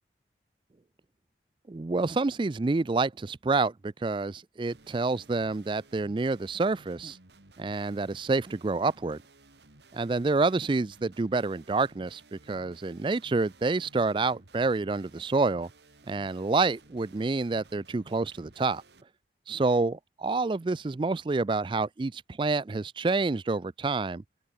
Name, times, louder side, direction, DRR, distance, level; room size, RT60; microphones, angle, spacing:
voice 1, 1.7-7.2 7.6-9.2 9.9-15.7 16.1-18.8 19.5-24.2, right 3 dB, 30° right, 0.4 m, -28 dB
sound 1, 4.7-19.0, right 2 dB, 75° right, 3.1 m, -57 dB
open air
head